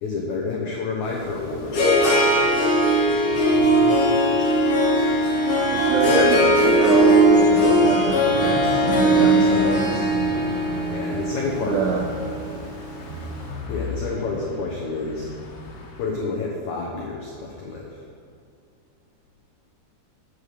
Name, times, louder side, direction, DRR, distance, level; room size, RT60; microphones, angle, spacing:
voice 1, 0.0-2.1 10.9-11.9 13.7-15.3 16.0-18.1, left 3 dB, 90° left, -2 dB, 1.6 m, -29 dB
Harp, 1.1-13.2, equal, 50° left, 3.5 m, -19 dB
Car passing by / Truck, 2.2-16.1, left 1 dB, 70° left, 3.3 m, -35 dB
voice 2, 5.7-10.1 11.6-12.1, right 5 dB, 80° right, 0 dB, 2.8 m, -26 dB
9.6 x 8.2 x 6.8 m, 2.4 s
omnidirectional pair, 5.1 m